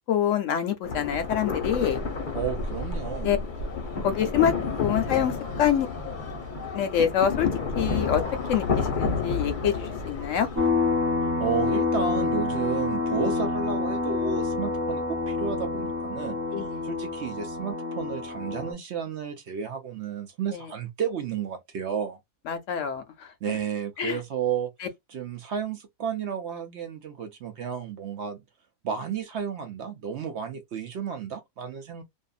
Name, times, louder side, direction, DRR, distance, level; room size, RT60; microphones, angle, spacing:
voice 1, 0.1-2.0 3.2-3.4 4.0-4.5 4.8-5.9 6.7-7.5 7.8-8.2 8.5-8.6 8.9-10.5 16.5-16.7 20.5-20.6 22.5-23.0 24.0-24.2, left 9 dB, 70° left, 0.9 m, -25 dB
sound 1, 0.8-10.7, left 4 dB, 40° left, 0.8 m, -30 dB
voice 2, 2.3-3.3 11.2-16.4 16.8-22.2 23.4-24.7 25.1-28.4 28.8-32.0, right 7 dB, 60° right, 0.8 m, -32 dB
sound 2, 10.5-18.7, left 3 dB, 20° right, 0.6 m, -27 dB
2.6 x 2.4 x 2.3 m
omnidirectional pair, 1.5 m